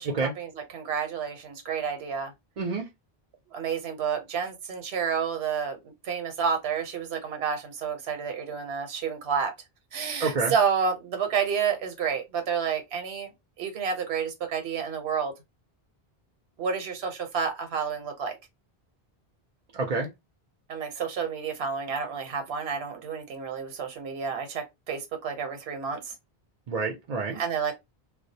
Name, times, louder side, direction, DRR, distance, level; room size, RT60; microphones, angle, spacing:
voice 1, 0.0-2.3 3.5-9.5 9.9-13.3 13.6-15.3 16.6-18.4 20.7-26.1 27.3-27.7, right 6 dB, 80° right, 0.9 m, -30 dB
voice 2, 2.6-2.9 10.2-10.5 19.7-20.1 26.7-27.4, right 4 dB, 50° right, 0.5 m, -28 dB
2.3 x 2.0 x 2.6 m
omnidirectional pair, 1.0 m